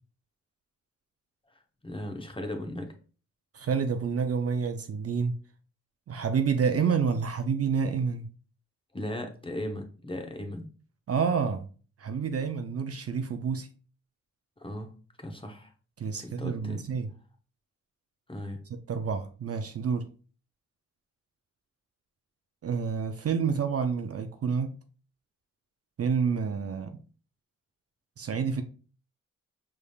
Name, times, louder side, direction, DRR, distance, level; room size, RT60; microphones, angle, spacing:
voice 1, 1.8-2.9 8.9-10.7 14.6-15.7 16.1-16.8 18.3-18.6, left 1 dB, 15° left, 0.9 m, -37 dB
voice 2, 3.5-5.3 6.1-8.3 11.1-11.7 12.0-13.7 16.0-17.1 18.9-20.1 22.6-24.7 26.0-27.0 28.2-28.6, right 6 dB, 50° right, 0.5 m, -28 dB
4.8 x 3.4 x 2.3 m
cardioid pair, 60°, 32 cm